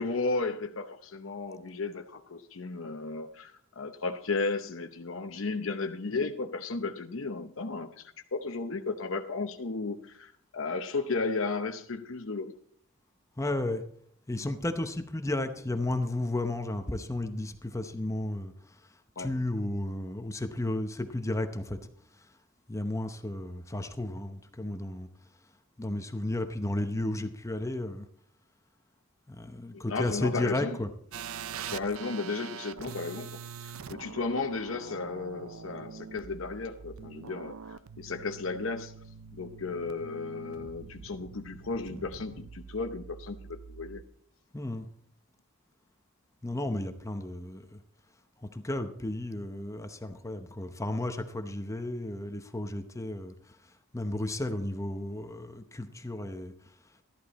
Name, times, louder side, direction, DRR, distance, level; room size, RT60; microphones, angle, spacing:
voice 1, 0.0-12.5 19.2-19.3 29.7-30.8 31.7-38.9 39.3-44.0, left 3 dB, 70° left, 0.8 m, -34 dB
voice 2, 13.4-13.8 14.3-18.5 19.2-21.8 22.7-25.1 25.8-28.0 29.3-30.9 44.5-44.9 46.4-47.6 48.4-53.3 53.9-56.5, left 1 dB, 15° left, 0.8 m, -33 dB
sound 1, 31.1-44.0, right 6 dB, 90° right, 0.5 m, -44 dB
13.5 x 12.0 x 4.2 m
head